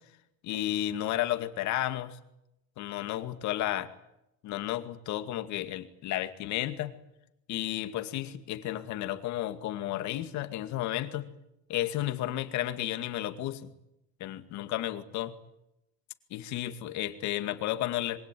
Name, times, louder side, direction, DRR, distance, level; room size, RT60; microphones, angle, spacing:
voice 1, 0.4-2.2 2.8-3.9 4.4-7.0 7.5-11.3 11.7-13.7 14.2-15.3 16.3-18.2, left 13 dB, 40° left, 9 dB, 2.3 m, -32 dB
26.5 x 23.0 x 9.2 m, 0.85 s
cardioid pair, 165°, 44 cm